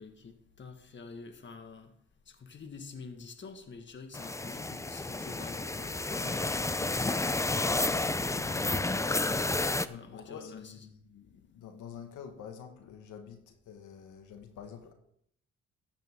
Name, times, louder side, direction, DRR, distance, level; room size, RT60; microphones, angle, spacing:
voice 1, 0.0-1.9 2.3-7.0 7.7-10.7, left 4 dB, 40° left, 6 dB, 1.7 m, -47 dB
sound 1, 4.1-9.9, left 2 dB, 10° left, 0.5 m, -31 dB
voice 2, 7.9-8.5 9.9-14.9, left 7 dB, 85° left, 5 dB, 1.7 m, -48 dB
14.0 x 9.1 x 3.7 m, 0.71 s
cardioid pair, 90°, 30 cm